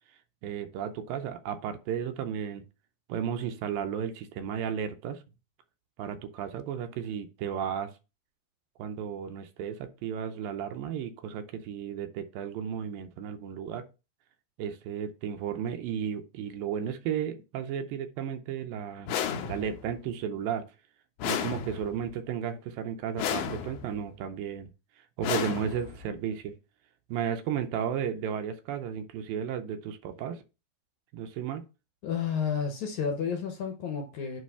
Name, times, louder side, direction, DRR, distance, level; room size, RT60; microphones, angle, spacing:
voice 1, 0.4-2.6 3.1-5.2 6.0-7.9 8.8-13.9 14.6-19.1 19.5-20.6 21.3-24.7 25.0-26.5 27.1-30.4 31.1-31.6, right 8 dB, 75° right, 2.3 m, -34 dB
sound 1, 19.1-19.9 21.2-22.1 23.2-24.0 25.2-26.1, left 8 dB, 90° left, 2.9 m, -33 dB
voice 2, 32.0-34.4, left 7 dB, 70° left, 2.0 m, -31 dB
9.4 x 3.2 x 5.5 m
omnidirectional pair, 4.4 m